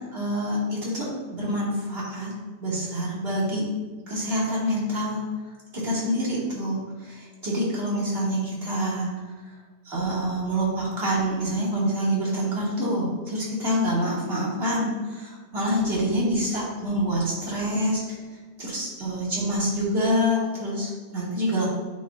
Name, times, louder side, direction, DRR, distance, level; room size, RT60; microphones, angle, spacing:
voice 1, 0.1-2.3 2.6-3.6 4.1-5.2 5.7-9.1 9.8-18.2 18.6-21.7, equal, 35° right, -7 dB, 2.7 m, -26 dB
8.9 x 6.4 x 2.6 m, 1.4 s
omnidirectional pair, 1.7 m